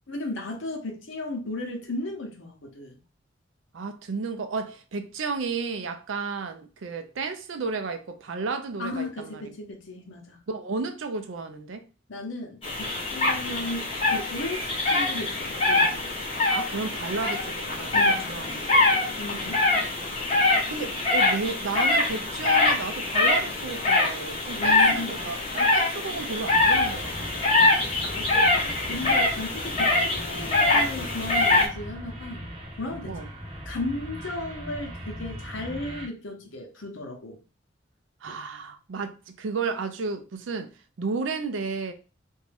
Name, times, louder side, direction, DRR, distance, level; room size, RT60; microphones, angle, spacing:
voice 1, 0.1-3.0 8.8-10.4 12.1-16.2 17.9-18.8 19.2-19.6 24.5-25.3 28.0-32.5 32.8-33.2 33.7-37.4, left 2 dB, 90° left, 0.8 m, -35 dB
voice 2, 3.7-9.4 10.5-11.8 16.5-18.8 20.0-20.2 20.7-27.7 33.1-33.3 38.2-40.7 41.0-41.9, right 4 dB, 80° right, 0.5 m, -33 dB
sound 1, 12.6-31.7, left 2 dB, 30° left, 1.1 m, -24 dB
sound 2, 26.4-36.1, equal, 30° right, 0.7 m, -39 dB
2.6 x 2.3 x 3.3 m
head